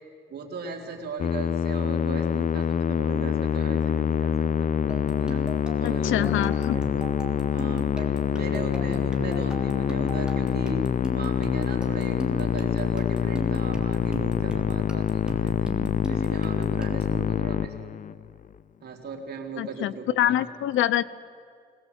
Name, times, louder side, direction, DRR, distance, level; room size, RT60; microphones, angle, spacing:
voice 1, 0.3-5.4 5.8-7.1 7.5-10.8 11.1-15.7 16.1-17.9 18.8-20.4, right 4 dB, 55° right, 1 dB, 3.6 m, -38 dB
Musical instrument, 1.2-18.3, left 8 dB, 40° left, 0.5 m, -26 dB
sound 1, 4.9-17.2, right 1 dB, 5° right, 3.2 m, -39 dB
voice 2, 5.8-6.8 19.6-21.0, left 12 dB, 80° left, 17 dB, 0.7 m, -25 dB
22.0 x 18.5 x 8.1 m, 2.2 s
cardioid pair, 90°, 20 cm